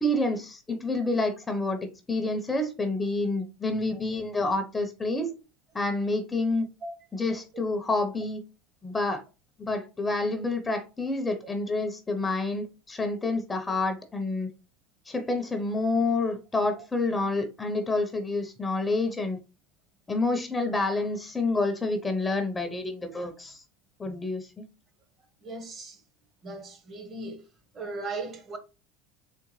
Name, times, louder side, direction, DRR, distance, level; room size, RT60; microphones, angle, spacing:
voice 1, 0.0-5.3 5.7-6.7 7.1-8.4 8.8-9.2 9.6-14.5 15.1-19.4 20.1-23.6 24.0-24.7, left 2 dB, 15° left, 0.6 m, -28 dB
voice 2, 25.4-26.0 26.4-27.5 27.7-28.6, right 3 dB, 35° right, 0.9 m, -37 dB
3.7 x 3.4 x 3.0 m
supercardioid pair, 115°, 0 cm